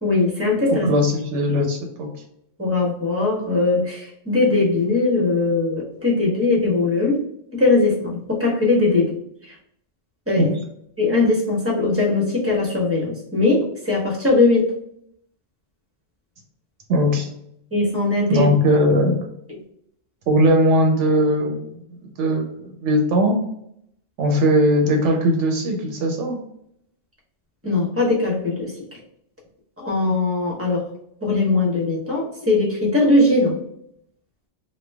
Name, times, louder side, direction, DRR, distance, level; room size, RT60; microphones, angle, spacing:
voice 1, 0.0-0.9 2.6-7.2 7.5-9.1 9.5-9.6 10.3-10.5 11.0-14.7 17.7-18.5 27.6-28.7 29.8-30.8 31.2-33.6, left 3 dB, 15° right, -3 dB, 0.9 m, -20 dB
voice 2, 0.8-2.1 10.4-10.5 16.9-17.3 18.3-19.2 20.3-23.4 24.2-26.4, equal, 80° right, 2 dB, 1.0 m, -19 dB
3.2 x 2.3 x 3.3 m, 0.73 s
omnidirectional pair, 1.2 m